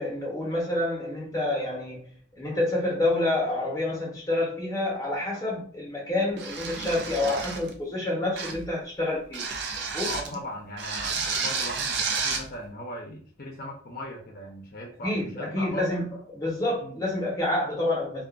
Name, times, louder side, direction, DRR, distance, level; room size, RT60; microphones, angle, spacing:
voice 1, 0.0-9.5 9.9-10.1 15.0-18.2, left 2 dB, 15° left, 0.9 m, -28 dB
sound 1, 6.4-7.7 8.4-8.7 9.3-10.3 10.8-12.5, right 5 dB, 55° right, 0.4 m, -31 dB
voice 2, 10.0-16.1 16.8-17.0, equal, 45° left, 0.7 m, -38 dB
2.4 x 2.3 x 2.4 m
head